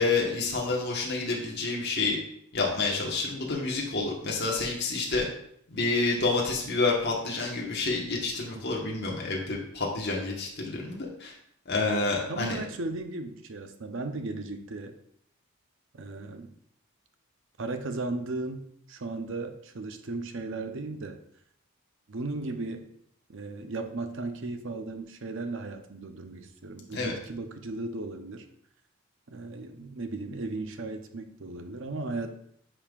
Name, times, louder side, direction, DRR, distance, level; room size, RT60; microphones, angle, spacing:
voice 1, 0.0-2.2 2.5-5.3 5.7-11.3 11.7-12.6 26.9-27.1, left 3 dB, 50° left, -2 dB, 1.4 m, -28 dB
voice 2, 12.0-15.0 15.9-16.5 17.6-21.2 22.1-22.9 23.3-28.4 29.3-32.3, right 3 dB, 60° right, 7 dB, 0.7 m, -36 dB
9.8 x 5.4 x 2.5 m, 0.68 s
head